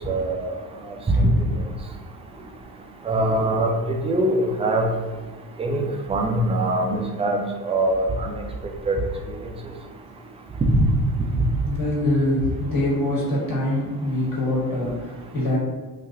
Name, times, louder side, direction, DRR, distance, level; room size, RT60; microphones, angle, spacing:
voice 1, 0.1-0.5 1.1-1.5 3.1-4.8 5.6-8.3 8.9-9.0 10.6-10.9, right 1 dB, 15° right, 2 dB, 0.3 m, -22 dB
voice 2, 11.6-15.6, left 1 dB, 45° left, -6 dB, 1.5 m, -24 dB
3.0 x 2.6 x 2.4 m, 1.3 s
hypercardioid pair, 50°, 47 cm